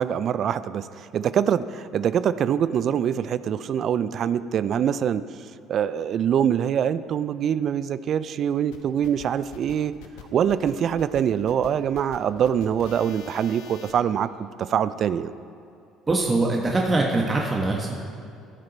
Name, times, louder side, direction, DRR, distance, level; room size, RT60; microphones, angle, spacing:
voice 1, 0.0-5.2 5.7-9.9 10.3-15.3, right 8 dB, 55° right, 14 dB, 0.3 m, -24 dB
sound 1, 8.7-13.9, left 7 dB, 75° left, 0.9 m, -45 dB
voice 2, 16.1-18.1, right 2 dB, 25° right, -1 dB, 1.2 m, -23 dB
15.0 x 6.5 x 4.2 m, 2.4 s
hypercardioid pair, 65°, 0 cm